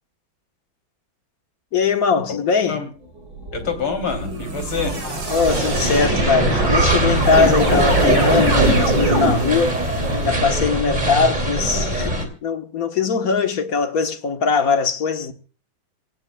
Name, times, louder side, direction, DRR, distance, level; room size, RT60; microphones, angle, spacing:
voice 1, 1.7-2.8 5.3-9.8 10.2-15.3, left 5 dB, 50° left, 1.5 m, -21 dB
voice 2, 2.3-2.9 3.5-5.0, left 5 dB, 80° left, 3.8 m, -27 dB
sound 1, 3.3-10.4, right 1 dB, 85° right, 5.0 m, -23 dB
sound 2, 5.5-12.3, right 1 dB, 20° right, 2.7 m, -22 dB
26.0 x 16.0 x 2.3 m
omnidirectional pair, 2.2 m